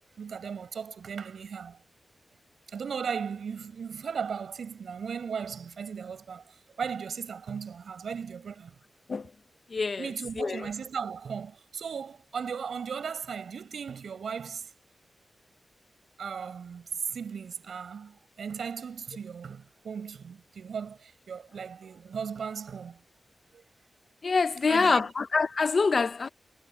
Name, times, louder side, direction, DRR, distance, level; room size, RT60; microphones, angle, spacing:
voice 1, 0.2-1.8 2.7-8.7 10.0-14.7 16.2-23.0 23.5-23.6 24.7-25.1, right 6 dB, 90° right, 7.7 m, -37 dB
voice 2, 9.7-10.0 10.4-10.7 24.2-26.3, left 4 dB, 45° left, 0.7 m, -25 dB
wide cardioid pair, 135°, 0 cm